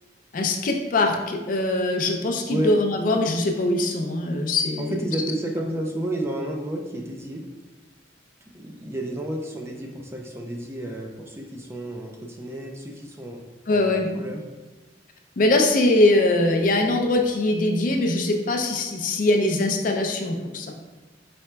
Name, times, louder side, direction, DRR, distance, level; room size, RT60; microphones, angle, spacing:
voice 1, 0.3-5.0 13.7-14.1 15.4-20.7, left 2 dB, 45° left, 3 dB, 0.4 m, -22 dB
voice 2, 4.8-7.4 8.5-13.4 13.7-14.4, right 1 dB, 15° right, 1 dB, 0.4 m, -31 dB
4.7 x 4.3 x 2.2 m, 1.2 s
head